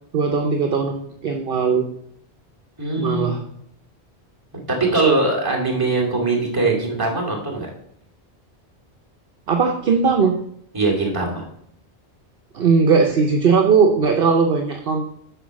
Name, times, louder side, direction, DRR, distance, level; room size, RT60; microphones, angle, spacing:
voice 1, 0.1-1.8 2.9-3.4 9.5-10.4 12.5-15.1, right 5 dB, 60° right, 4 dB, 0.9 m, -18 dB
voice 2, 2.8-3.3 4.8-7.7 10.7-11.4, right 3 dB, 20° right, -3 dB, 2.4 m, -21 dB
7.9 x 4.9 x 6.3 m, 0.71 s
omnidirectional pair, 1.1 m